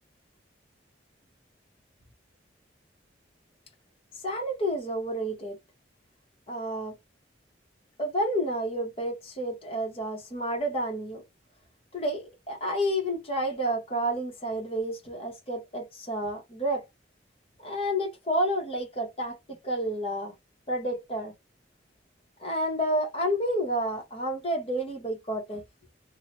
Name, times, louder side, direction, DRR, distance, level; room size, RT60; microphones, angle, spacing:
voice 1, 4.2-5.6 6.5-6.9 8.0-11.2 11.9-16.8 17.6-20.3 20.7-21.3 22.4-25.6, equal, 30° left, 1.0 m, -30 dB
2.7 x 2.1 x 2.9 m
head